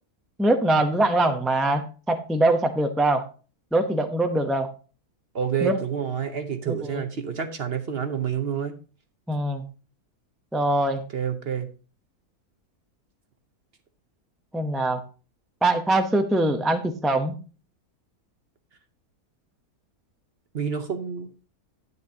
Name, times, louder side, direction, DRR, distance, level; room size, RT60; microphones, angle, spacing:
voice 1, 0.4-3.2 3.7-4.7 5.6-5.8 6.7-7.0 9.3-9.6 10.5-11.0 14.5-15.0 15.6-17.4, right 1 dB, ahead, 5 dB, 0.4 m, -23 dB
voice 2, 5.3-8.7 11.1-11.7 20.5-21.3, right 7 dB, 50° right, 8 dB, 0.9 m, -28 dB
10.5 x 9.3 x 2.8 m, 0.36 s
omnidirectional pair, 1.7 m